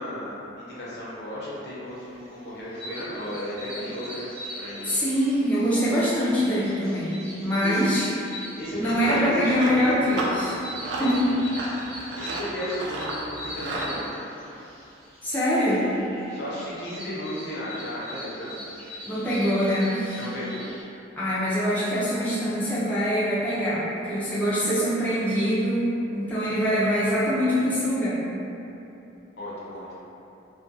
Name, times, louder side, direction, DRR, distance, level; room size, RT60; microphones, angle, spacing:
voice 1, 0.0-4.3 4.6-4.9 7.6-7.8 8.6-9.9 11.0-11.2 12.2-14.1 16.3-18.7 20.1-20.6 29.4-29.9, equal, 60° left, -7 dB, 0.6 m, -34 dB
sound 1, 2.2-20.8, equal, 30° right, 0.6 m, -42 dB
voice 2, 4.8-8.1 8.8-10.6 11.0-11.3 15.2-15.9 19.1-20.2 21.2-28.2, equal, 10° left, -11 dB, 0.4 m, -24 dB
Run, 8.6-13.9, right 1 dB, 70° right, 0.4 m, -33 dB
2.3 x 2.2 x 2.6 m, 2.9 s
head